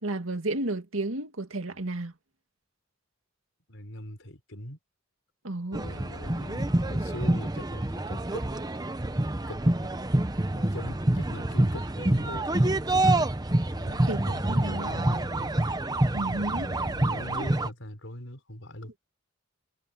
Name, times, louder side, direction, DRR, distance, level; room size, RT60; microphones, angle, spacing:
voice 1, 0.0-2.1 5.4-5.8 14.1-14.2 14.5-14.9 16.1-16.7, right 2 dB, 85° right, 2.1 m, -32 dB
voice 2, 3.7-4.8 5.8-8.5 9.5-9.9 10.5-12.7 13.7-15.5 16.4-19.0, left 1 dB, 70° left, 5.4 m, -41 dB
sound 1, 5.7-17.7, right 1 dB, 20° right, 0.9 m, -27 dB
head